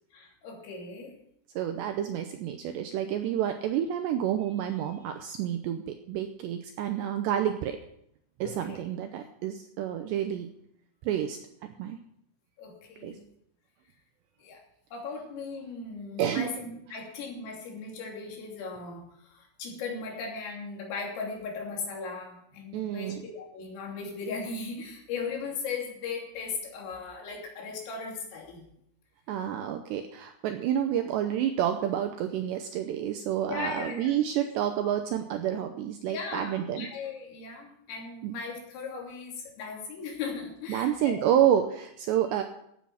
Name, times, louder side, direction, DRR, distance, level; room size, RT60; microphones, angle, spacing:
voice 1, 0.1-1.1 2.9-3.0 8.4-8.8 12.6-13.2 14.4-14.6 14.9-28.6 33.5-34.1 34.8-34.9 36.1-41.2, left 4 dB, 80° left, 0 dB, 5.6 m, -38 dB
voice 2, 1.6-7.8 8.4-10.5 11.0-11.4 11.8-12.0 13.0-13.2 16.2-16.6 22.7-23.2 29.3-36.9 38.2-38.3 40.7-42.4, right 10 dB, 90° right, 6 dB, 2.5 m, -29 dB
15.0 x 8.5 x 5.8 m, 0.72 s
omnidirectional pair, 5.8 m